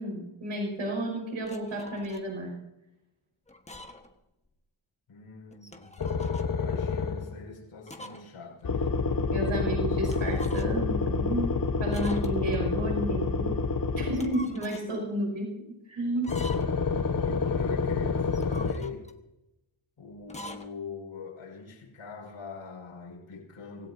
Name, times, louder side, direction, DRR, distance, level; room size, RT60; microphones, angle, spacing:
voice 1, 0.0-2.6 9.3-11.5 11.8-13.6 14.0-15.5 15.9-16.3, right 1 dB, 70° right, 5.8 m, -31 dB
sound 1, 1.4-2.3 3.5-4.1 4.5-4.6 5.5-6.5 7.9-8.3 8.6-8.7 10.0-10.9 11.9-12.6 14.0-14.9 16.1-16.9 18.2-19.2 20.2-20.7, left 2 dB, 15° left, 1.4 m, -45 dB
voice 2, 5.1-5.9 6.5-9.0 17.1-19.1 20.0-23.9, left 5 dB, 80° left, 5.4 m, -42 dB
sound 2, 6.0-7.4 8.6-14.5 16.3-18.7, left 4 dB, 40° left, 1.2 m, -28 dB
25.5 x 16.5 x 2.8 m
cardioid pair, 85°, 50 cm